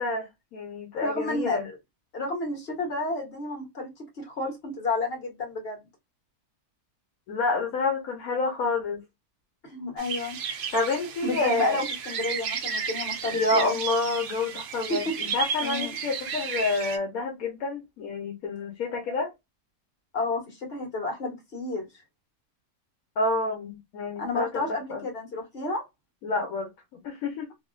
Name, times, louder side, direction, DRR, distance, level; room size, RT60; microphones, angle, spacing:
voice 1, 0.0-1.7 7.3-9.0 10.7-11.8 13.3-19.3 23.2-24.6 24.9-25.0 26.2-26.7 27.0-27.5, left 3 dB, 70° left, 1.2 m, -28 dB
voice 2, 1.0-1.8 2.1-5.9 9.6-10.4 11.2-13.8 14.9-15.1 15.6-16.0 20.1-21.8 24.2-25.8, left 2 dB, 40° left, 1.8 m, -31 dB
sound 1, 10.0-17.0, right 6 dB, 80° right, 0.4 m, -33 dB
3.4 x 2.5 x 2.3 m
omnidirectional pair, 1.6 m